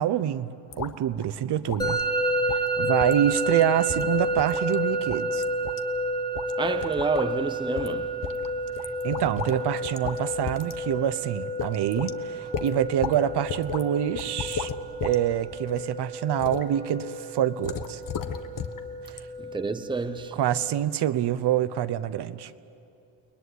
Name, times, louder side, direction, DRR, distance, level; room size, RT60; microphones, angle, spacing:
voice 1, 0.0-2.0 2.8-5.4 9.0-14.7 15.0-18.0 20.3-22.5, right 11 dB, 55° right, 0.9 m, -26 dB
sound 1, 0.7-1.3 1.7-2.0 2.5-2.7 3.0-3.2 3.5-3.6 3.9-4.7 5.1-5.8 6.3-6.5 6.8-7.3 7.8-7.9 8.2-9.6 9.8-10.2 10.5-10.8 11.1-11.2 11.6-12.1 12.5-13.2 13.5-13.8 14.2-15.2 15.5-15.8 16.4-16.7 17.6-18.8 19.1-19.2, left 8 dB, 40° left, 1.3 m, -34 dB
Musical instrument, 1.8-20.7, right 1 dB, 10° left, 1.7 m, -30 dB
voice 2, 6.6-8.2 19.4-20.4, right 4 dB, 10° right, 0.8 m, -29 dB
30.0 x 20.5 x 9.7 m
cardioid pair, 140°, 48 cm